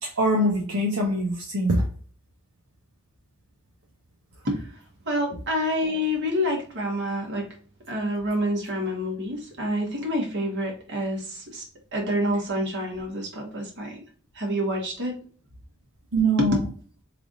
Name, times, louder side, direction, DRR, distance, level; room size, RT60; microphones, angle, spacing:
voice 1, 0.0-1.8 16.1-16.6, right 1 dB, 70° right, -1 dB, 0.7 m, -23 dB
voice 2, 5.0-7.5 7.9-11.6 11.9-14.0 14.3-15.2 16.4-16.5, equal, 50° right, 0 dB, 1.3 m, -27 dB
3.3 x 2.5 x 3.9 m, 0.42 s
head